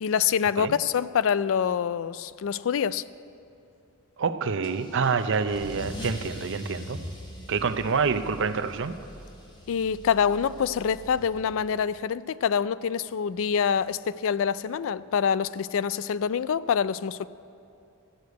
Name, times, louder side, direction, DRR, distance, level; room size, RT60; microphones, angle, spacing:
voice 1, 0.0-3.0 9.7-17.3, left 7 dB, 65° left, 17 dB, 0.3 m, -26 dB
voice 2, 4.2-7.0 7.5-9.0, right 5 dB, 60° right, 10 dB, 0.6 m, -27 dB
Car / Engine starting / Accelerating revving vroom, 4.6-11.8, equal, 20° left, 1.4 m, -42 dB
14.0 x 6.6 x 9.4 m, 2.6 s
head